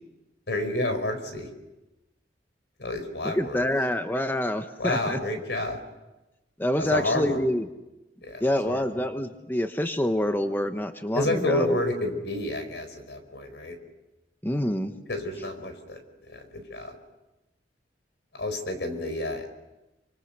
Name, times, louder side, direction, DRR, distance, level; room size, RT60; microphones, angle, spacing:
voice 1, 0.5-1.5 2.8-3.7 4.8-5.8 6.8-7.4 8.2-8.8 11.1-13.8 15.1-16.0 16.3-16.9 18.3-19.4, left 1 dB, 75° left, 7 dB, 4.7 m, -29 dB
voice 2, 3.2-5.2 6.6-7.7 8.4-11.8 14.4-15.0, left 1 dB, 10° left, 7 dB, 1.0 m, -27 dB
29.5 x 25.5 x 6.7 m, 1.0 s
head